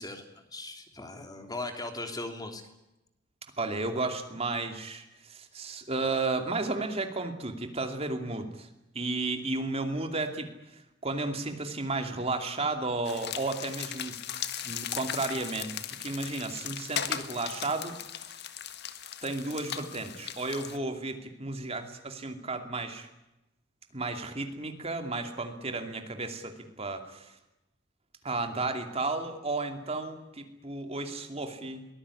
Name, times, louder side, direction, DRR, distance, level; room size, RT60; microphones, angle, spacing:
voice 1, 0.0-2.6, left 2 dB, 20° left, 5 dB, 3.1 m, -39 dB
voice 2, 3.6-8.7 8.9-15.7 16.0-18.0 19.2-23.1 23.9-27.3 28.2-31.9, right 3 dB, 30° right, 6 dB, 2.7 m, -33 dB
sound 1, 13.1-20.8, left 9 dB, 60° left, 1.7 m, -38 dB
23.5 x 20.0 x 9.9 m, 0.92 s
head